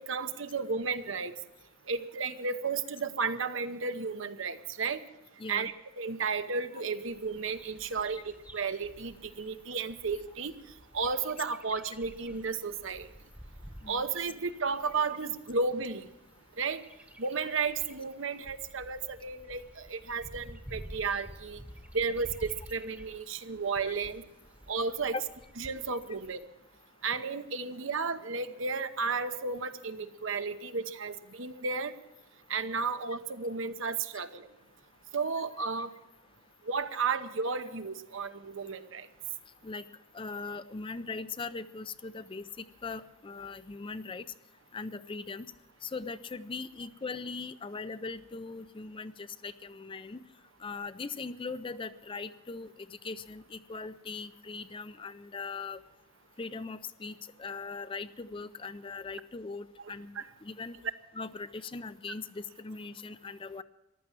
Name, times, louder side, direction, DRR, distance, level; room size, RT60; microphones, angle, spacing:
voice 1, 0.1-1.3 1.9-5.1 5.5-10.5 10.9-13.1 13.9-16.1 16.6-16.8 17.2-21.6 21.9-24.2 24.7-25.1 25.6-26.4 27.0-31.9 32.5-34.5 35.1-35.9 36.7-39.1 60.2-60.3, right 4 dB, 65° right, 10 dB, 0.9 m, -33 dB
voice 2, 5.4-5.7 13.8-14.0 23.9-24.0 25.1-25.2 39.6-39.9 40.1-44.3 44.7-45.5 45.8-50.2 50.6-55.8 56.4-60.1 60.4-60.8 61.1-63.6, left 4 dB, 25° left, 13 dB, 0.4 m, -40 dB
Bird vocalization bird call bird song, 7.1-26.4, equal, 5° right, 1.0 m, -51 dB
14.5 x 12.0 x 7.3 m, 0.95 s
head